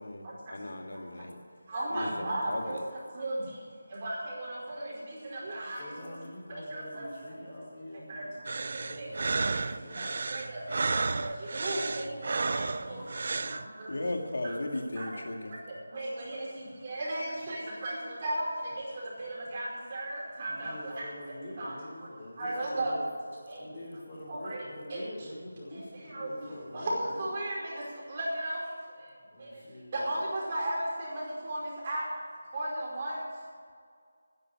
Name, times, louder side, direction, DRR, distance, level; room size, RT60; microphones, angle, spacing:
voice 1, 0.0-1.4 1.9-2.8 13.9-15.5, left 1 dB, 75° left, 3 dB, 2.3 m, -36 dB
voice 2, 1.7-2.8 3.1-3.4 3.9-5.8 6.5-7.1 8.1-8.3 8.5-8.6 9.0-9.3 10.0-10.7 11.2-12.5 12.9-13.0 13.8-13.9 14.4-14.5 15.0-15.1 15.9-18.5 19.2-21.1 21.6-21.7 22.4-22.9 23.5-23.6 24.3-24.6 24.9-25.0 26.1-26.3 26.7-27.8 28.1-28.6 29.9-31.6 31.8-32.0 32.5-33.2, right 1 dB, 30° right, -5 dB, 5.1 m, -35 dB
voice 3, 5.8-10.0 12.7-13.7 20.4-23.0 23.6-27.4 29.3-30.2, left 1 dB, 25° left, -11 dB, 5.1 m, -45 dB
sound 1, 8.5-13.6, right 3 dB, 50° right, 0.5 m, -32 dB
11.5 x 10.5 x 8.8 m, 2.1 s
figure-of-eight pair, 170°, 0 cm